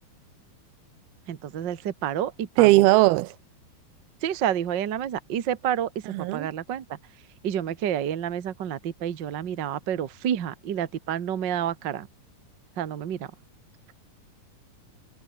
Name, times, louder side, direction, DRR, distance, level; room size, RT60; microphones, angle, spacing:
voice 1, 1.3-2.8 4.2-7.0 7.4-12.1 12.8-13.3, right 10 dB, 75° right, 1.0 m, -29 dB
voice 2, 2.6-3.3 6.1-6.5, right 19 dB, 90° right, 2.6 m, -18 dB
omnidirectional pair, 4.5 m